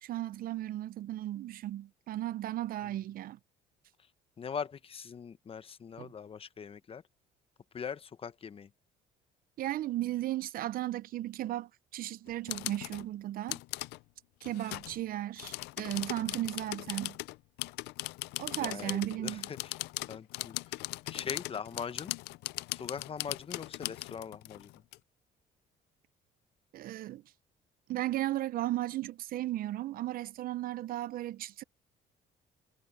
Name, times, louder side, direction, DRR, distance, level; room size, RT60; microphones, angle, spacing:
voice 1, 0.0-3.4 6.0-6.1 9.6-13.6 14.4-17.2 18.4-19.5 26.7-27.2 27.9-31.6, right 14 dB, 60° right, 0.5 m, -35 dB
voice 2, 4.4-7.0 7.7-8.7 18.6-19.8 20.1-22.1 22.7-24.8, left 6 dB, 35° left, 0.9 m, -41 dB
sound 1, 12.3-13.0 13.5-14.0 14.4-15.0 15.4-25.0, left 21 dB, 85° left, 0.4 m, -39 dB
cardioid pair, 110°, 17 cm